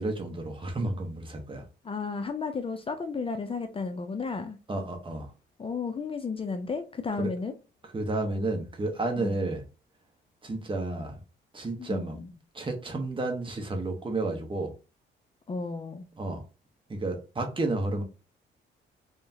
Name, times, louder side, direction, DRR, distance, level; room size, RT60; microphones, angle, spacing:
voice 1, 0.0-1.7 4.7-5.3 7.2-7.3 7.9-9.6 10.4-11.2 11.5-12.1 12.5-14.7 16.2-16.4 16.9-18.0, right 2 dB, 25° right, 1.3 m, -31 dB
voice 2, 1.8-4.6 5.6-7.5 9.1-9.4 11.8-12.3 15.5-16.1, left 4 dB, 25° left, 0.6 m, -33 dB
3.5 x 3.5 x 2.9 m
cardioid pair, 90°, 20 cm